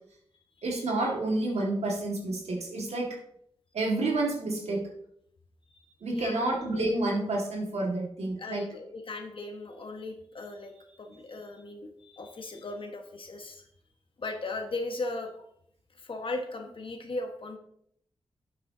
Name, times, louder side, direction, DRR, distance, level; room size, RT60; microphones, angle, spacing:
voice 1, 0.6-3.2 3.7-4.9 6.0-8.8, right 2 dB, 75° right, -1 dB, 1.9 m, -29 dB
voice 2, 6.1-6.5 8.4-10.7 11.0-13.6 14.2-15.3 16.0-17.6, left 2 dB, 55° left, 3 dB, 1.4 m, -37 dB
9.7 x 7.7 x 2.8 m, 0.69 s
cardioid pair, 60°, 11 cm